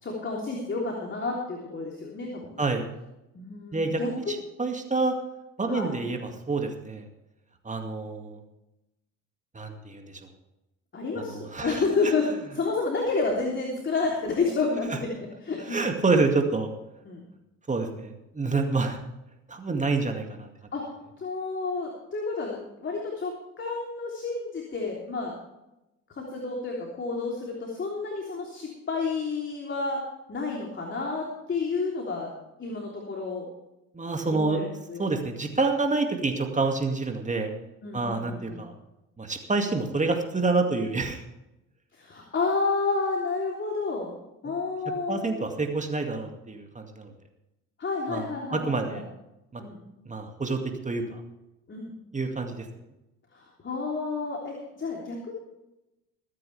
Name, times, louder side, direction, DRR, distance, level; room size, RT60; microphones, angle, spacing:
voice 1, 0.0-2.6 3.3-4.4 5.7-5.9 10.9-12.3 12.5-15.8 17.0-17.2 20.7-20.9 21.2-25.3 26.1-30.0 30.3-33.5 34.3-35.0 37.8-38.6 41.9-45.4 47.8-49.0 49.6-49.8 51.7-51.9 53.3-55.3, left 4 dB, 30° left, -1 dB, 3.4 m, -30 dB
voice 2, 3.7-5.1 5.6-7.1 7.6-8.4 9.5-10.2 11.2-11.8 14.9-15.0 15.7-16.7 17.7-19.0 19.5-20.5 33.9-34.6 35.0-37.5 37.9-38.7 39.2-41.2 44.4-44.5 45.1-47.1 48.1-48.3 48.5-49.0 49.5-49.6 50.1-50.6 50.8-51.2 52.1-52.7, right 3 dB, 20° right, 4 dB, 2.2 m, -27 dB
22.5 x 9.7 x 3.4 m, 0.93 s
figure-of-eight pair, 60°, 39 cm